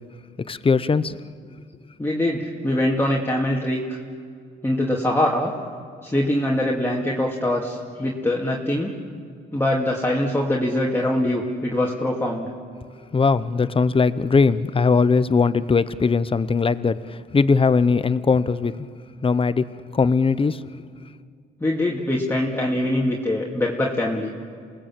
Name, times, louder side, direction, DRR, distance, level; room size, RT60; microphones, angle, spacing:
voice 1, 0.5-1.1 13.1-18.9 19.2-19.7 19.9-20.6, left 4 dB, 25° left, 0.9 m, -20 dB
voice 2, 2.0-4.0 4.6-5.5 6.0-8.9 9.5-12.5 21.6-24.3, left 1 dB, 10° left, 2.6 m, -23 dB
28.0 x 19.5 x 7.6 m
cardioid pair, 90°, 20 cm